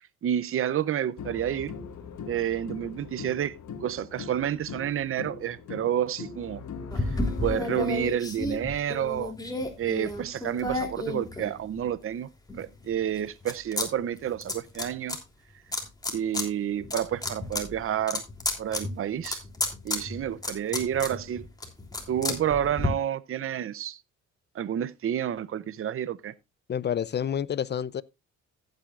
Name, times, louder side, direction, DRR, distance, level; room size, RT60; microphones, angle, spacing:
voice 1, 0.2-1.7 2.3-3.5 3.8-6.6 7.0-7.1 7.4-9.3 9.8-12.3 12.6-15.2 16.1-18.2 18.6-19.4 19.8-21.4 22.1-24.0 24.5-26.3, right 10 dB, 45° right, 0.7 m, -29 dB
sound 1, 1.2-8.1, left 6 dB, 70° left, 1.8 m, -40 dB
sound 2, 6.9-12.0 12.5-13.9 14.1-15.2 15.7-16.5 16.8-22.9, left 2 dB, 15° left, 3.2 m, -32 dB
voice 2, 26.7-28.0, left 9 dB, 35° left, 0.6 m, -29 dB
14.5 x 9.0 x 2.5 m
cardioid pair, 90°, 30 cm